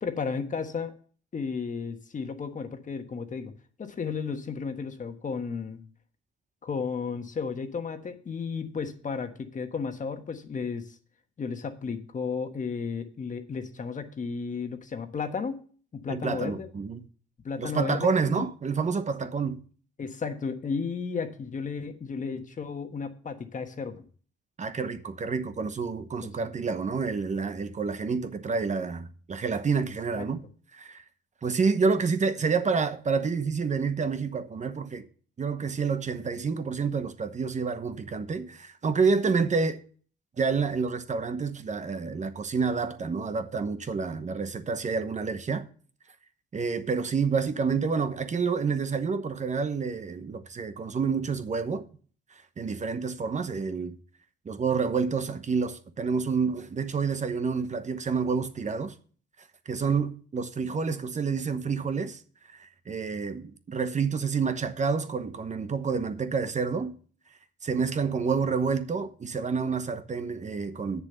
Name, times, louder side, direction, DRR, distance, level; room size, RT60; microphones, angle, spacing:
voice 1, 0.0-0.9 1.3-3.5 3.8-5.8 6.6-11.0 11.4-15.6 15.9-16.7 17.4-18.5 20.0-24.0 29.8-29.9 30.1-30.2, left 5 dB, 40° left, 1.4 m, -33 dB
voice 2, 16.1-17.0 17.6-19.6 24.6-30.4 30.7-31.0 31.4-35.1 35.4-39.8 40.4-45.6 46.5-51.8 52.3-54.0 54.4-58.9 59.7-62.2 62.5-67.0 67.6-71.0, right 5 dB, 35° right, 1.0 m, -28 dB
8.1 x 6.8 x 6.7 m
cardioid pair, 90°, 20 cm